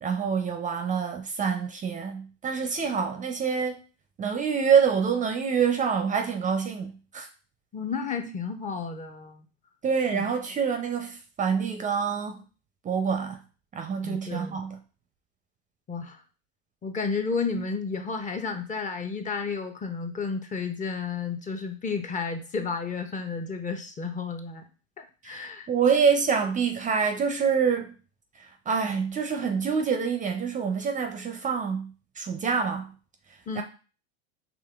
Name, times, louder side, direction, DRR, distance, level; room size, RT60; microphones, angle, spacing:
voice 1, 0.0-3.8 4.2-7.3 9.8-12.4 12.8-13.4 13.7-14.8 25.2-27.9 28.4-32.9 33.6-33.7, right 6 dB, 25° right, 0.5 m, -26 dB
voice 2, 7.7-9.4 10.1-10.3 14.0-14.6 15.9-16.2 16.8-24.7 25.0-25.7 33.5-33.6, left 5 dB, 25° left, 0.6 m, -32 dB
4.9 x 2.9 x 2.3 m
hypercardioid pair, 95°, 31 cm